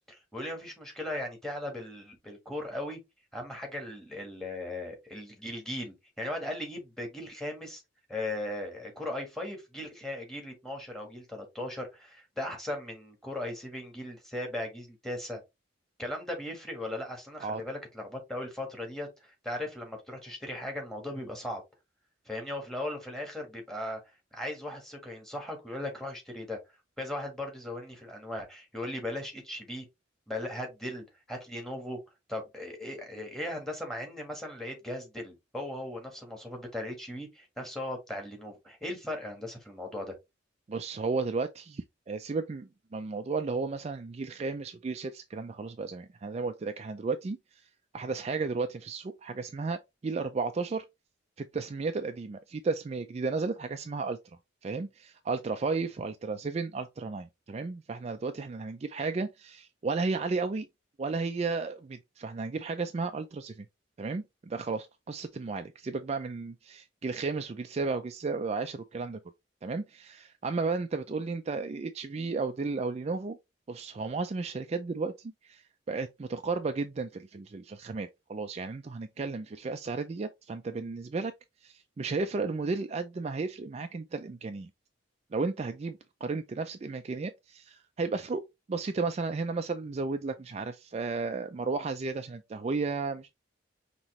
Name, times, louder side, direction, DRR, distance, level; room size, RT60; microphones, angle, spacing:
voice 1, 0.1-3.0 3.3-7.8 8.1-15.4 16.0-21.6 22.2-24.0 24.3-26.6 27.0-29.9 30.3-32.0 32.3-40.1, left 1 dB, ahead, 1.6 m, -38 dB
voice 2, 40.7-47.4 47.9-50.8 51.4-54.2 54.6-60.7 61.0-63.7 64.0-69.2 69.6-73.4 73.7-81.3 81.6-84.7 85.3-88.4 88.7-93.3, right 4 dB, 35° right, 0.3 m, -33 dB
5.5 x 3.0 x 3.0 m
head